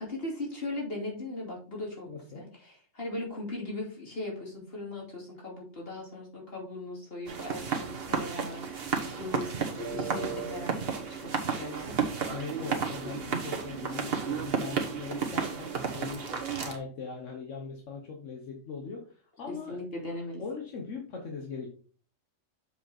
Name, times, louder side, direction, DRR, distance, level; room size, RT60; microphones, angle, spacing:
voice 1, 0.0-9.5 9.9-12.1 19.5-20.4, left 2 dB, 50° left, -2 dB, 3.0 m, -39 dB
voice 2, 2.1-2.4 12.3-16.3 16.6-19.8 20.4-21.7, left 5 dB, 80° left, 1 dB, 1.5 m, -40 dB
sound 1, 7.3-16.8, right 5 dB, 55° right, 1.4 m, -32 dB
7.2 x 5.1 x 4.3 m, 0.43 s
omnidirectional pair, 1.3 m